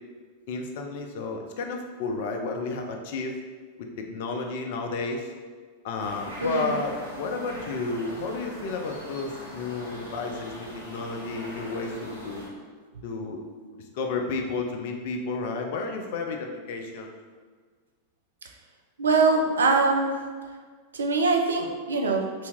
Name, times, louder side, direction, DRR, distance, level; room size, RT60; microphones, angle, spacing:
voice 1, 0.5-3.3 4.0-5.3 5.8-12.5 13.0-13.4 13.7-17.1, left 3 dB, 50° left, 3 dB, 0.4 m, -32 dB
sound 1, 6.0-12.5, left 1 dB, 85° right, 0.9 m, -41 dB
voice 2, 6.4-6.7 19.0-20.2 20.9-22.5, right 3 dB, 70° right, 3 dB, 0.4 m, -23 dB
2.8 x 2.6 x 3.4 m, 1.6 s
figure-of-eight pair, 90°, 0 cm